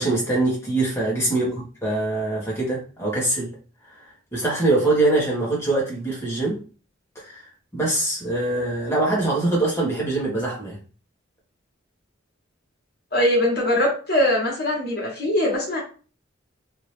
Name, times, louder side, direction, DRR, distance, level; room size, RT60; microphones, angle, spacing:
voice 1, 0.0-1.5 1.8-3.5 4.3-6.6 7.1-7.4 7.7-10.8, right 2 dB, 15° left, 1.2 m, -23 dB
voice 2, 13.1-15.8, left 1 dB, 50° left, 1.4 m, -21 dB
2.8 x 2.8 x 3.2 m
head